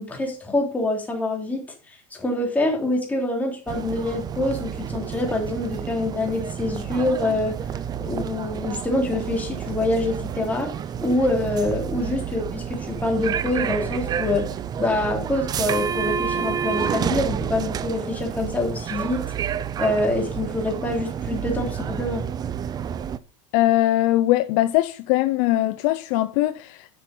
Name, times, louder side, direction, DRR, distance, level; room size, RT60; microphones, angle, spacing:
voice 1, 0.0-7.6 8.0-10.7 11.0-14.5 14.8-19.2 19.8-22.2, left 2 dB, 10° left, 3.3 m, -25 dB
sound 1, 3.7-23.2, right 8 dB, 25° right, 0.5 m, -29 dB
voice 2, 23.5-26.9, left 15 dB, 60° left, 0.6 m, -21 dB
10.0 x 6.1 x 5.4 m
supercardioid pair, 140°, 17 cm